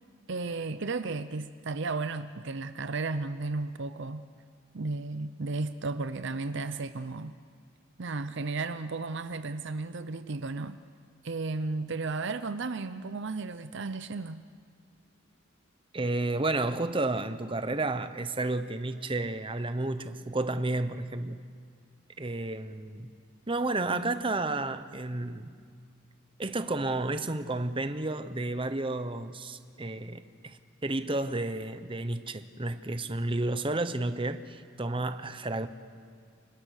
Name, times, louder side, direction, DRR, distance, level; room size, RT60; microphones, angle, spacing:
voice 1, 0.3-4.3 4.7-7.4 8.0-10.8 11.2-14.4, right 3 dB, 55° right, 0.7 m, -34 dB
voice 2, 15.9-21.4 22.2-23.1 23.5-25.5 26.4-35.7, right 2 dB, 25° right, 1.0 m, -31 dB
30.0 x 24.5 x 6.6 m
head